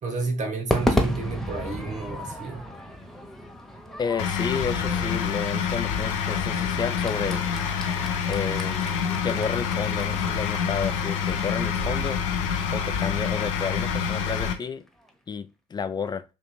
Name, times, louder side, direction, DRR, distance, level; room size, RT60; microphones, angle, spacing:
voice 1, 0.0-2.7, right 3 dB, 45° right, 1.3 m, -31 dB
Crowd / Fireworks, 0.7-15.1, equal, ahead, 1.0 m, -34 dB
voice 2, 4.0-7.4 8.2-8.9 9.2-12.2 12.7-14.8 15.3-16.2, left 6 dB, 25° left, 0.5 m, -31 dB
sound 1, 4.2-14.5, left 7 dB, 70° left, 0.6 m, -27 dB
6.1 x 2.7 x 2.3 m
figure-of-eight pair, 45°, 17 cm